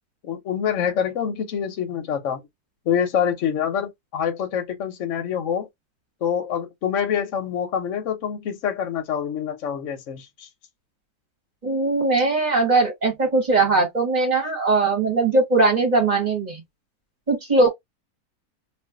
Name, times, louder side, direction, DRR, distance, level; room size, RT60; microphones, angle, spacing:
voice 1, 0.2-2.4 2.9-5.7 6.2-10.5, left 8 dB, 60° left, 1.0 m, -26 dB
voice 2, 11.6-16.6 17.3-17.7, right 3 dB, 30° right, 0.9 m, -20 dB
2.6 x 2.4 x 3.5 m
omnidirectional pair, 1.7 m